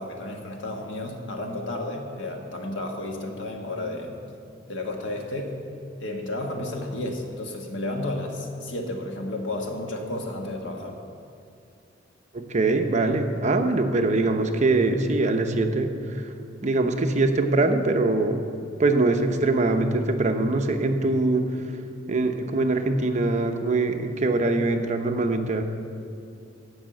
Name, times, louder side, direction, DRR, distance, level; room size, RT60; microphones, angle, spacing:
voice 1, 0.0-4.2 4.7-5.6 6.0-11.0, left 1 dB, 75° left, 2 dB, 1.4 m, -32 dB
voice 2, 12.3-16.3 16.6-18.4 18.8-21.7 22.1-25.6, right 2 dB, 40° right, 5 dB, 0.7 m, -23 dB
13.5 x 5.6 x 7.7 m, 2.5 s
head